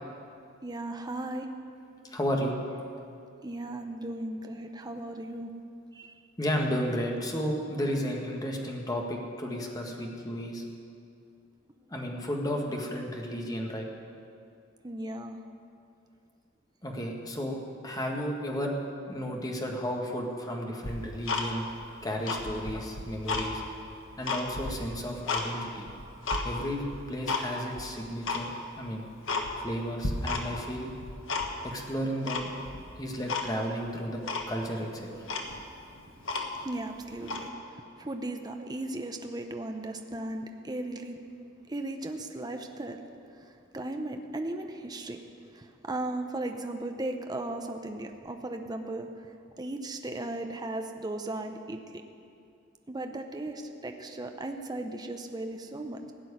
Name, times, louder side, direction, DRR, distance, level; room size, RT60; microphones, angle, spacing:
voice 1, 0.6-1.5 3.4-5.5 5.9-6.1 14.8-15.4 36.6-37.5 38.0-41.2 41.7-43.0 43.4-43.5 43.7-45.2 45.5-49.1 49.6-52.0 52.9-56.1, right 2 dB, 20° right, 5 dB, 0.7 m, -36 dB
voice 2, 2.1-2.6 6.4-10.6 11.9-13.9 16.8-17.6 17.8-18.7 19.1-21.7 22.0-23.6 24.2-25.9 26.4-26.8 27.1-28.5 28.8-29.1 29.6-30.9 31.6-32.5 33.0-34.2 34.5-35.1, equal, 20° left, 0 dB, 1.6 m, -33 dB
Tick-tock, 20.8-21.8 22.2-23.5 23.9-25.5 25.9-26.5 26.9-27.5 27.7-27.8 28.2-28.5 28.9-29.0 29.3-29.8 30.0-30.7 30.9-31.7 32.3-32.8 33.3-33.5 33.8-33.9 34.3-34.5 35.0-35.1 35.2-36.7 37.2-37.5, left 3 dB, 85° left, 1.4 m, -32 dB
16.5 x 6.1 x 9.9 m, 2.5 s
head